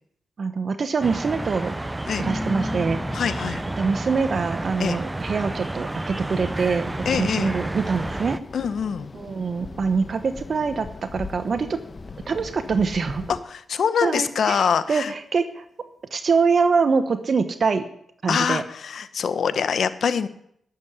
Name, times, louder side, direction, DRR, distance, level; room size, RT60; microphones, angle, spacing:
voice 1, 0.4-1.8 2.2-3.0 3.8-8.4 9.1-11.8 12.3-13.2 14.0-15.6 16.1-17.8 18.2-18.6, right 5 dB, 55° right, 9 dB, 1.1 m, -24 dB
sound 1, 1.0-8.4, right 2 dB, 20° right, 0.6 m, -31 dB
sound 2, 2.2-8.8, left 1 dB, 15° left, 1.1 m, -37 dB
voice 2, 3.1-3.6 4.8-5.0 7.0-7.6 8.5-9.1 13.3-15.1 18.3-20.3, left 7 dB, 65° left, 13 dB, 1.0 m, -24 dB
sound 3, 6.3-13.4, left 3 dB, 40° left, 1.2 m, -40 dB
12.5 x 7.8 x 9.9 m, 0.72 s
supercardioid pair, 50°, 0 cm